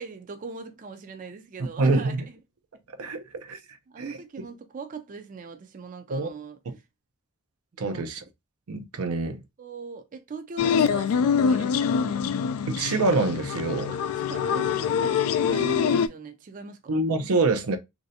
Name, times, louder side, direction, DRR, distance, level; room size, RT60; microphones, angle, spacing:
voice 1, 0.0-2.4 3.9-6.6 7.7-8.0 9.6-12.2 14.2-16.9, right 4 dB, 35° right, 0.4 m, -40 dB
voice 2, 1.8-2.2 3.0-3.6 4.0-4.2 6.1-6.3 6.7-6.8 7.8-8.2 8.7-9.4 12.7-13.9 16.9-17.8, right 3 dB, 90° right, 0.6 m, -25 dB
sound 1, 10.6-16.1, left 7 dB, 80° left, 0.3 m, -24 dB
3.1 x 2.6 x 2.6 m
head